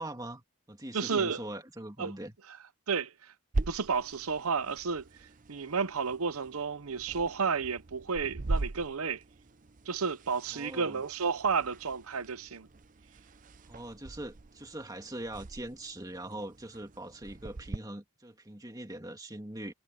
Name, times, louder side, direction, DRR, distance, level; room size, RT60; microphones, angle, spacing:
voice 1, 0.0-2.4 10.5-11.0 13.7-19.7, right 1 dB, 15° right, 2.2 m, -42 dB
voice 2, 0.9-1.4 2.0-2.1 2.9-3.3 3.7-5.0 5.5-9.2 9.9-12.7, right 5 dB, 80° right, 0.9 m, -31 dB
sound 1, 3.5-17.8, right 2 dB, 35° right, 0.5 m, -41 dB
head